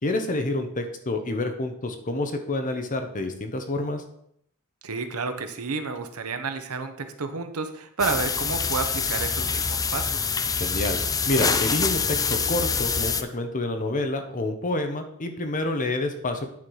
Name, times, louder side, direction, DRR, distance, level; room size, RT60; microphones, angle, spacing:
voice 1, 0.0-4.0 10.5-11.0 11.3-16.5, left 2 dB, 35° left, 6 dB, 0.9 m, -28 dB
voice 2, 4.8-10.3, right 4 dB, 80° right, 8 dB, 0.9 m, -30 dB
sound 1, 8.0-13.2, left 5 dB, 15° left, 0.4 m, -25 dB
9.5 x 4.5 x 4.8 m, 0.70 s
head